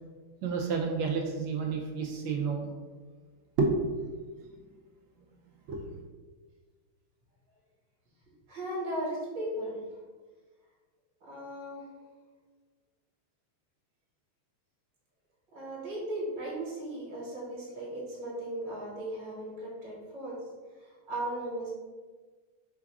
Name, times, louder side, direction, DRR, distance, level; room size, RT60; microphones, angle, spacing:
voice 1, 0.4-2.7 3.6-3.9 5.7-5.9, right 4 dB, 75° right, 1 dB, 1.2 m, -30 dB
voice 2, 8.5-9.8 11.2-11.8 15.5-20.4 20.8-21.7, right 1 dB, 60° right, -7 dB, 1.9 m, -37 dB
4.6 x 2.4 x 4.6 m, 1.4 s
omnidirectional pair, 2.4 m